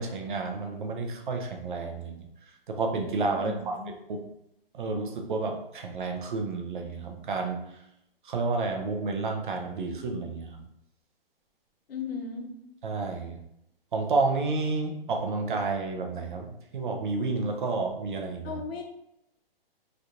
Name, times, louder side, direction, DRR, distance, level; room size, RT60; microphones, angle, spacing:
voice 1, 0.0-2.3 2.7-3.8 4.1-4.2 4.7-7.8 8.2-10.6 12.8-13.4 13.9-18.6, right 3 dB, 55° right, 3 dB, 0.7 m, -30 dB
voice 2, 3.4-3.9 11.9-12.5 18.4-18.8, left 5 dB, 80° left, 2 dB, 0.9 m, -36 dB
3.3 x 2.5 x 2.8 m, 0.81 s
hypercardioid pair, 175°, 30 cm